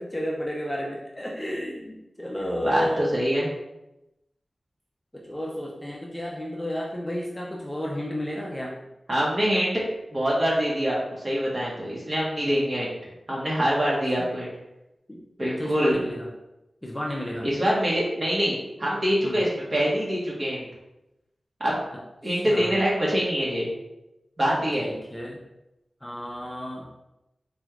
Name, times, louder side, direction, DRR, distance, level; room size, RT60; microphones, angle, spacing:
voice 1, 0.0-3.1 5.1-8.7 13.8-13.9 14.2-14.3 15.1-15.2 15.6-16.3 16.8-17.5 19.2-19.4 21.9-22.8 24.8-25.4 26.0-26.9, equal, 10° left, -3 dB, 0.5 m, -32 dB
voice 2, 2.6-3.5 9.1-9.8 10.1-13.0 13.3-14.5 15.4-16.0 17.4-20.7 21.6-21.8 22.2-23.7 24.4-24.9, equal, 35° right, -6 dB, 1.3 m, -24 dB
4.1 x 3.2 x 2.4 m, 0.92 s
wide cardioid pair, 105°, 0 cm